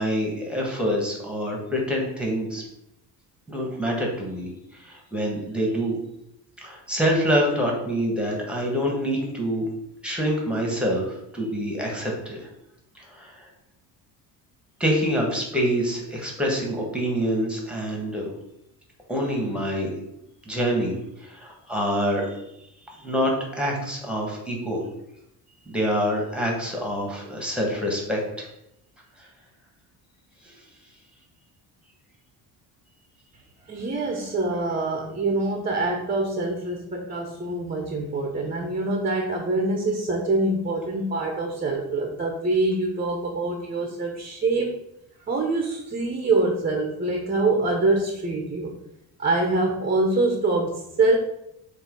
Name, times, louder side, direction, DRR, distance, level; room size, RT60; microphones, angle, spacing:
voice 1, 0.0-2.6 3.5-5.9 6.6-9.6 10.0-12.5 12.9-13.5 14.8-18.3 19.1-19.9 20.4-22.4 23.0-24.9 25.7-28.5 30.4-30.5, equal, 5° right, -1 dB, 1.6 m, -26 dB
voice 2, 33.7-44.8 45.3-48.7 49.2-51.2, right 2 dB, 20° right, 2 dB, 1.0 m, -25 dB
7.0 x 2.9 x 5.4 m, 0.82 s
cardioid pair, 145°, 39 cm